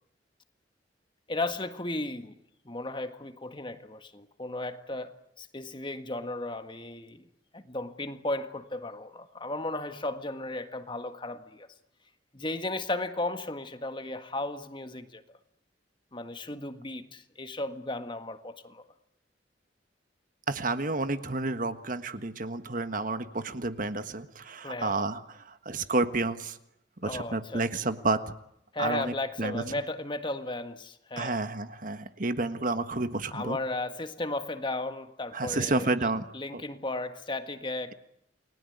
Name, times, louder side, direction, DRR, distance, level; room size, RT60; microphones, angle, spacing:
voice 1, 1.3-2.3 2.6-5.1 5.4-7.2 7.5-11.7 12.3-15.2 16.1-18.8 24.6-25.0 27.0-27.7 28.7-31.4 33.3-35.9 36.3-37.9, left 2 dB, 25° left, 1.7 m, -35 dB
voice 2, 20.5-26.6 27.0-28.2 28.8-29.6 31.2-33.6 35.3-36.3 36.5-36.6, right 2 dB, 45° right, 1.5 m, -30 dB
29.5 x 20.5 x 9.4 m
head